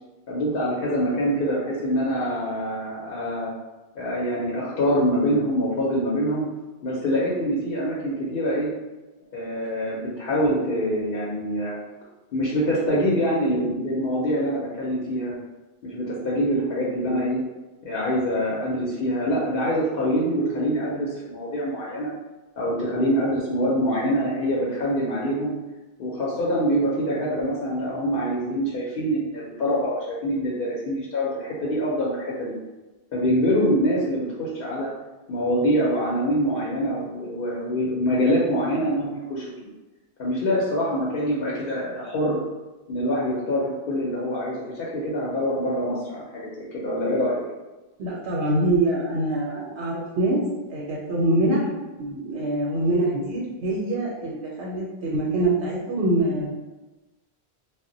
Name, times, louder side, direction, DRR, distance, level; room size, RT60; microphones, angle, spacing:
voice 1, 0.3-3.5 3.9-6.5 6.8-8.7 9.3-11.8 12.3-15.4 15.8-17.4 17.8-22.1 22.6-25.5 26.0-32.5 33.1-34.9 35.3-39.5 40.2-42.4 42.9-47.4, equal, 65° left, -5 dB, 0.8 m, -25 dB
voice 2, 48.0-50.4 50.7-51.7 52.0-56.5, right 1 dB, 85° right, -5 dB, 0.8 m, -24 dB
2.1 x 2.0 x 3.7 m, 1.1 s
omnidirectional pair, 1.1 m